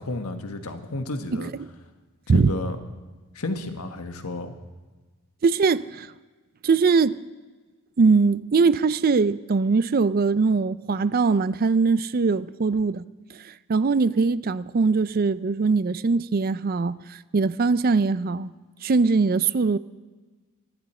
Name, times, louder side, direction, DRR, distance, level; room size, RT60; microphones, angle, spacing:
voice 1, 0.0-1.5 2.3-2.8 3.3-4.5, left 2 dB, 85° left, 1.4 m, -32 dB
voice 2, 5.4-6.1 6.6-7.2 8.0-13.0 13.3-18.5 18.8-19.8, right 4 dB, 45° right, 0.4 m, -21 dB
23.5 x 10.5 x 4.4 m
head